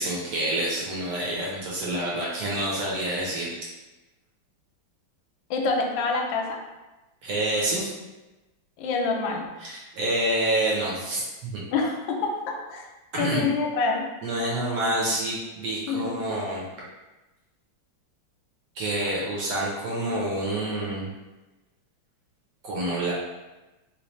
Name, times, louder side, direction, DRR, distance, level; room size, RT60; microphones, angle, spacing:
voice 1, 0.0-3.5 7.2-7.9 9.6-11.6 13.1-13.4 14.2-16.6 18.7-21.1 22.6-23.1, right 1 dB, 65° right, -5 dB, 1.2 m, -27 dB
voice 2, 5.5-6.6 8.8-9.5 11.7-12.9 13.2-14.1 15.9-16.1, left 4 dB, 75° left, 1 dB, 1.2 m, -26 dB
3.1 x 3.1 x 3.1 m, 1.1 s
omnidirectional pair, 2.4 m